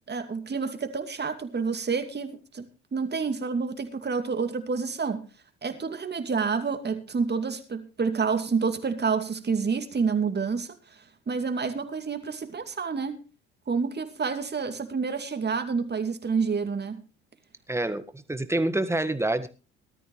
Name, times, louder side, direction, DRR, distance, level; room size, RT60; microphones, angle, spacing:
voice 1, 0.1-5.3 5.6-10.7 11.3-13.2 13.7-17.0, right 5 dB, 30° right, 2.5 m, -28 dB
voice 2, 17.7-19.5, right 2 dB, 10° right, 1.8 m, -27 dB
18.5 x 13.0 x 3.2 m
hypercardioid pair, 60°, 33 cm